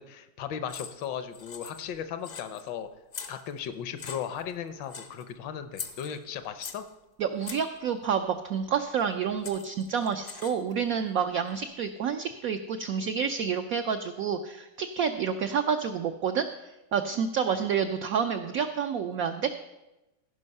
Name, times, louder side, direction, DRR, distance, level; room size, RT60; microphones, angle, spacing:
voice 1, 0.0-2.9 3.3-6.8, left 8 dB, 75° left, 11 dB, 1.4 m, -36 dB
sound 1, 0.7-1.1 1.3-2.0 2.2-2.7 3.1-3.7 4.0-4.5 4.9-5.2 5.7-6.9 7.4-7.8 9.0-9.1 9.4-10.7, left 6 dB, 55° left, 0.6 m, -41 dB
voice 2, 7.2-16.5 16.9-19.6, right 7 dB, 75° right, 7 dB, 0.8 m, -29 dB
15.5 x 5.4 x 5.4 m, 0.98 s
omnidirectional pair, 2.0 m